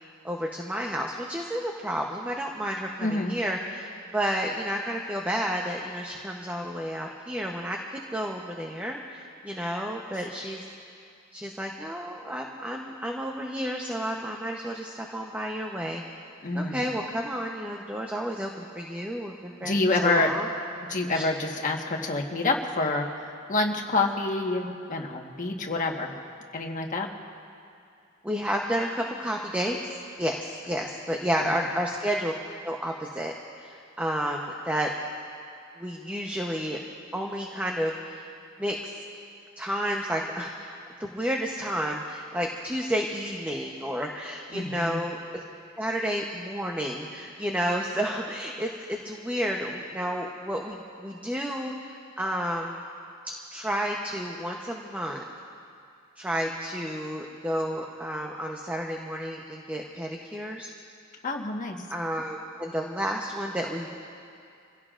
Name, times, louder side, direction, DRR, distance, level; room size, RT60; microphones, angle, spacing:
voice 1, 0.2-11.0 11.3-16.0 16.5-20.5 21.1-21.2 28.2-32.3 32.6-34.9 35.8-36.8 37.1-38.3 38.6-39.0 39.6-45.4 45.8-52.8 53.2-55.2 56.2-60.7 61.9-63.9, equal, 10° right, 0 dB, 0.8 m, -31 dB
voice 2, 3.0-3.4 16.4-16.8 19.6-20.3 20.9-26.1 26.5-27.1 31.4-31.5 44.5-45.0 61.2-61.8, left 2 dB, 40° left, 1 dB, 1.4 m, -27 dB
27.5 x 16.5 x 2.5 m, 2.5 s
head